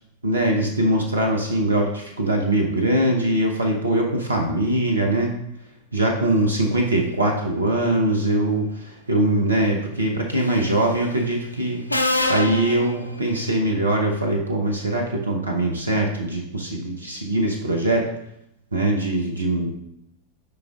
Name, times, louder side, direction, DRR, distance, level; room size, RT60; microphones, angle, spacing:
voice 1, 0.2-5.3 5.9-11.8 12.3-18.1 18.7-19.7, right 1 dB, 80° right, 1 dB, 0.8 m, -22 dB
Subway metro underground, 10.4-10.8 11.9-13.6, left 2 dB, 85° left, 0.4 m, -25 dB
8.1 x 5.0 x 2.4 m, 0.78 s
figure-of-eight pair, 90°, 0 cm